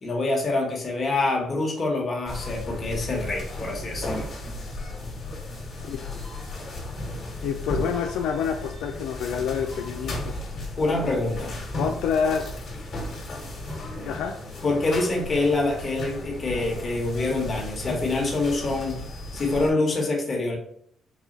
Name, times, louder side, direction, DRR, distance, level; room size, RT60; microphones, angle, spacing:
voice 1, 0.0-4.3 10.8-11.6 14.6-19.0 19.3-20.6, left 2 dB, 40° left, 0 dB, 1.3 m, -26 dB
sound 1, 2.3-19.7, left 1 dB, 55° left, 1.5 m, -35 dB
voice 2, 7.4-10.3 11.8-12.5 14.1-14.4, left 7 dB, 90° left, 4 dB, 0.3 m, -27 dB
4.2 x 2.4 x 3.8 m, 0.66 s
cardioid pair, 90°, 0 cm